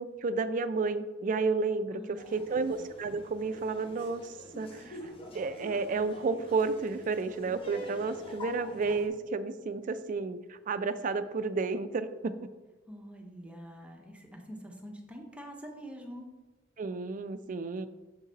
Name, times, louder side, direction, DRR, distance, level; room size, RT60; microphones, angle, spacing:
voice 1, 0.0-5.0 5.3-12.4 16.8-17.9, right 4 dB, 45° right, 11 dB, 0.3 m, -31 dB
voice 2, 1.9-2.6 12.9-16.3, equal, 5° right, 1 dB, 0.7 m, -46 dB
Laughter, 2.2-9.1, equal, 30° left, 0.8 m, -46 dB
7.3 x 3.9 x 4.0 m, 1.2 s
head